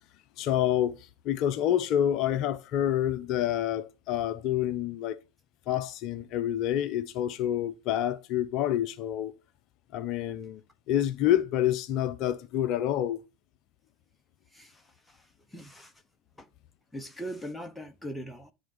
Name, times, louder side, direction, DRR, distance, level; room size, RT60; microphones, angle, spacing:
voice 1, 0.4-5.2 5.7-9.3 9.9-10.6 10.9-13.2, left 11 dB, 35° left, 0.6 m, -28 dB
voice 2, 15.5-15.9 16.4-16.5 16.9-18.5, equal, 5° left, 0.8 m, -40 dB
11.0 x 3.8 x 5.2 m
figure-of-eight pair, 90°, 0 cm